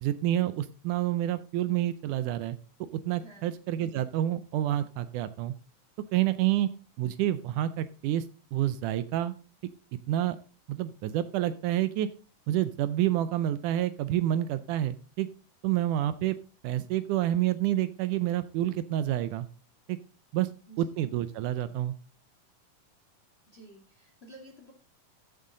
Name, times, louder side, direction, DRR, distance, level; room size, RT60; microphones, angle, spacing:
voice 1, 0.0-5.5 6.1-6.7 7.0-8.3 8.5-9.3 10.1-10.4 10.7-12.1 12.5-15.3 15.6-16.4 16.6-19.5 19.9-20.0 20.3-20.5 20.8-21.9, right 13 dB, 80° right, 14 dB, 2.0 m, -28 dB
voice 2, 23.5-24.7, right 1 dB, 25° left, 3 dB, 1.5 m, -51 dB
14.0 x 7.7 x 3.8 m, 0.35 s
omnidirectional pair, 3.8 m